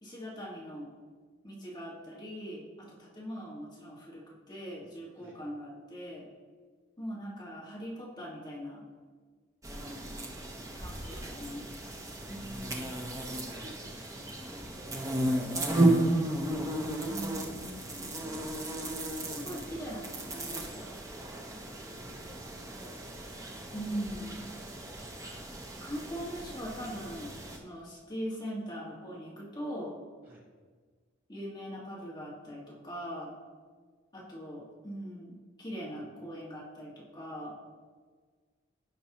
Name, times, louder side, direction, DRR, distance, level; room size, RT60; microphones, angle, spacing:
voice 1, 0.0-0.9 1.4-6.3 7.0-8.9 10.7-11.7 12.3-13.1 17.1-18.3 19.3-20.9 23.7-24.4 25.8-30.0 31.3-33.3 34.1-37.5, equal, 20° left, -6 dB, 1.7 m, -41 dB
sound 1, 9.6-27.6, right 1 dB, 15° right, 0.7 m, -34 dB
voice 2, 11.1-11.6 12.2-12.4 12.8-13.6 13.9-17.3 21.7-23.2 23.5-24.0 24.5-25.1 30.2-30.5, equal, 45° right, -6 dB, 2.8 m, -57 dB
15.5 x 5.4 x 3.0 m, 1.5 s
head